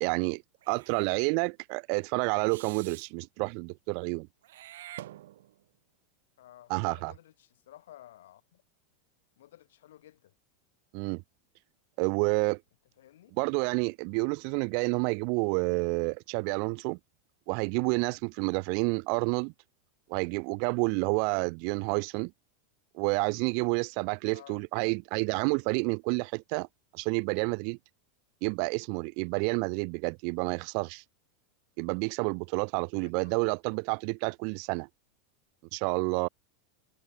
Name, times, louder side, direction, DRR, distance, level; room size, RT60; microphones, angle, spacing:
voice 1, 0.0-4.3 6.7-7.1 10.9-11.2 12.0-12.6 13.4-17.0 17.5-19.5 20.1-22.3 22.9-26.7 26.9-27.8 28.4-31.0 31.8-34.9 35.7-36.3, right 40 dB or more, 40° right, 0.8 m, -29 dB
Meow / Hiss, 0.6-1.2 2.5-3.1 4.4-5.7, right 14 dB, 75° right, 2.6 m, -47 dB
voice 2, 6.4-8.6 9.4-10.3 13.0-13.4 24.2-24.6 33.0-33.5, left 13 dB, 85° left, 4.8 m, -54 dB
supercardioid pair, 175°, 0 cm